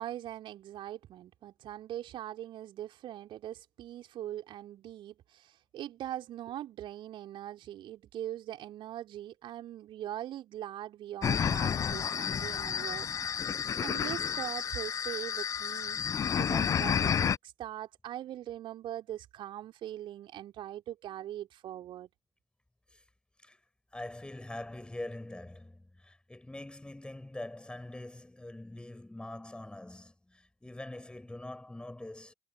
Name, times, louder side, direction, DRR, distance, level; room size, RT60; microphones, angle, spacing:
voice 1, 0.0-13.1 13.8-22.1, right 12 dB, 50° right, 3.3 m, -41 dB
sound 1, 11.2-17.4, left 8 dB, 30° left, 0.4 m, -31 dB
voice 2, 23.9-32.3, left 1 dB, 10° left, 6.9 m, -44 dB
figure-of-eight pair, 55°, 11 cm